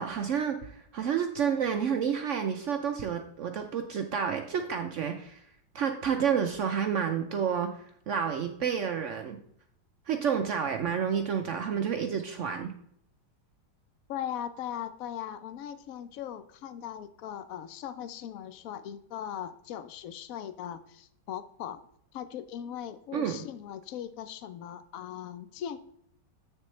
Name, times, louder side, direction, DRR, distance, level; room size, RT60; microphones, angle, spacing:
voice 1, 0.0-5.4 5.7-9.4 10.1-12.7 23.1-23.4, right 7 dB, 85° right, 5 dB, 0.6 m, -30 dB
voice 2, 14.1-21.8 22.1-25.8, left 10 dB, 70° left, 12 dB, 0.8 m, -39 dB
8.3 x 6.5 x 3.2 m, 0.70 s
omnidirectional pair, 2.0 m